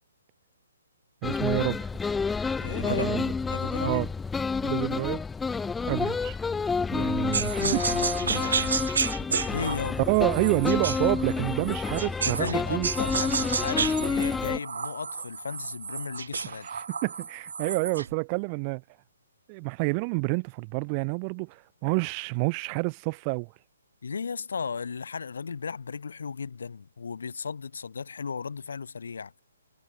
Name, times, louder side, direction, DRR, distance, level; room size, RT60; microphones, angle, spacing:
sound 1, 1.2-14.6, left 5 dB, 5° left, 1.5 m, -29 dB
voice 1, 1.2-1.9 2.8-3.3 3.8-4.1 4.6-5.2 5.9-6.4 6.9-7.8 10.0-12.9 16.4-18.8 19.5-23.5, right 34 dB, 20° right, 2.8 m, -28 dB
voice 2, 2.6-3.1 3.5-4.0 4.6-4.8 7.5-8.8 9.5-10.1 12.2-16.7 24.0-29.4, left 5 dB, 75° left, 4.8 m, -35 dB
sound 2, 7.3-12.6 12.8-18.1, right 6 dB, 70° right, 2.7 m, -32 dB
hypercardioid pair, 170°, 0 cm